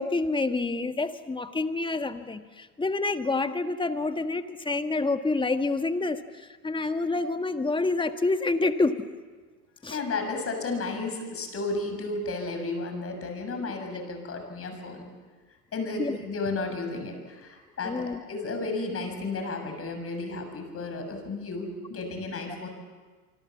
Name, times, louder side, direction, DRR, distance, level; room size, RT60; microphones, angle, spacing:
voice 1, 0.0-9.1 9.8-10.0 16.0-16.2 17.8-18.2, left 3 dB, 10° left, 9 dB, 1.5 m, -28 dB
voice 2, 9.9-15.1 15.7-22.7, left 3 dB, 30° left, 5 dB, 6.9 m, -33 dB
27.0 x 24.5 x 7.3 m, 1.4 s
hypercardioid pair, 95°, 48 cm